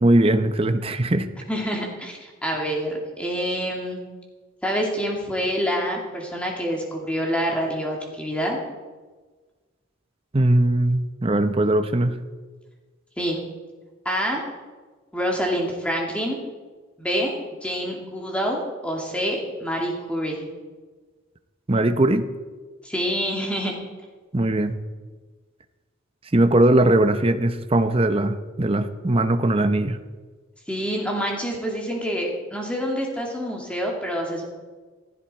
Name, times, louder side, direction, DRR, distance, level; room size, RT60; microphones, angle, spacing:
voice 1, 0.0-1.3 10.3-12.2 21.7-22.3 24.3-24.8 26.3-30.0, right 1 dB, 25° right, 9 dB, 0.7 m, -20 dB
voice 2, 1.5-4.0 4.6-8.6 13.2-13.4 14.0-14.4 15.1-16.4 17.0-17.3 17.6-20.5 22.8-23.7 30.7-34.4, equal, 5° left, -1 dB, 2.6 m, -27 dB
15.5 x 15.0 x 4.4 m, 1.4 s
head